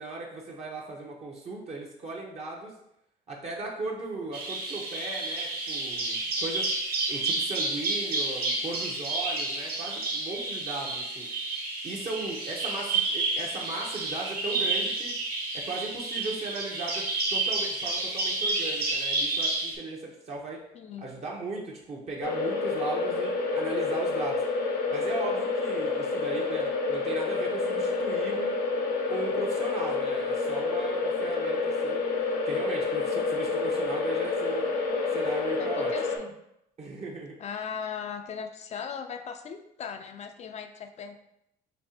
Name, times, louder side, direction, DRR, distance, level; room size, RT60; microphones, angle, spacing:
voice 1, 0.0-2.7 3.3-6.7 7.1-11.3 11.8-15.1 15.5-20.6 21.0-24.4 24.9-28.6 29.1-32.0 32.4-34.7 35.1-35.9 36.8-37.4, right 3 dB, 40° right, -2 dB, 0.8 m, -37 dB
Bird vocalization bird call bird song, 4.3-19.7, right 2 dB, 60° right, 1.5 m, -30 dB
voice 2, 20.7-21.1 35.6-36.3 37.4-41.3, left 7 dB, 40° left, 6 dB, 0.4 m, -38 dB
sound 1, 22.2-36.2, left 4 dB, 80° left, 0.8 m, -28 dB
5.3 x 2.8 x 2.8 m, 0.80 s
cardioid pair, 110°, 17 cm